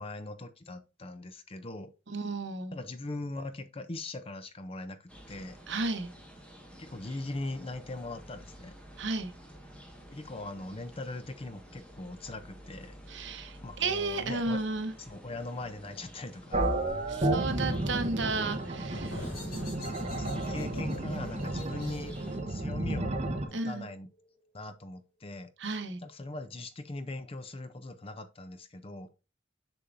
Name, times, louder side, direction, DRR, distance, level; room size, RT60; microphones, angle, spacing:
voice 1, 0.0-1.9 2.7-5.6 6.8-8.8 10.1-13.0 13.6-14.6 15.0-16.6 19.2-22.2 22.5-23.2 23.4-24.1 24.5-29.1, left 2 dB, 30° left, 0.6 m, -41 dB
voice 2, 2.1-2.7 5.7-6.1 9.0-9.3 13.1-14.9 17.1-19.2 23.5-23.9 25.6-26.0, right 3 dB, 65° right, 1.0 m, -33 dB
sound 1, 5.1-22.4, equal, 5° left, 1.5 m, -51 dB
sound 2, 16.5-23.5, right 2 dB, 35° right, 0.9 m, -32 dB
sound 3, 18.8-24.2, left 1 dB, 55° left, 3.8 m, -44 dB
6.7 x 6.2 x 2.6 m
head